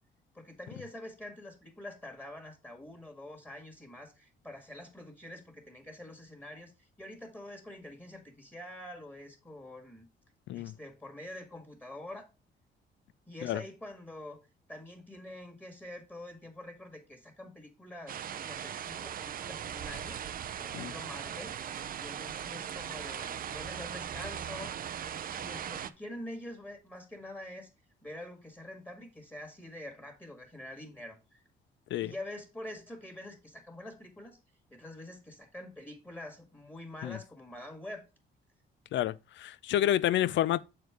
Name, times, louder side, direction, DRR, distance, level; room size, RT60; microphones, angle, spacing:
voice 1, 0.3-10.1 10.5-12.3 13.3-14.4 14.7-20.2 20.6-21.5 22.0-24.7 25.3-27.7 28.0-31.4 32.0-34.4 34.7-38.0, left 1 dB, 10° left, 1.7 m, -46 dB
sound 1, 18.1-25.9, right 9 dB, 45° right, 0.5 m, -39 dB
voice 2, 38.9-40.6, left 12 dB, 70° left, 0.4 m, -29 dB
6.7 x 4.5 x 4.6 m
cardioid pair, 90°, 20 cm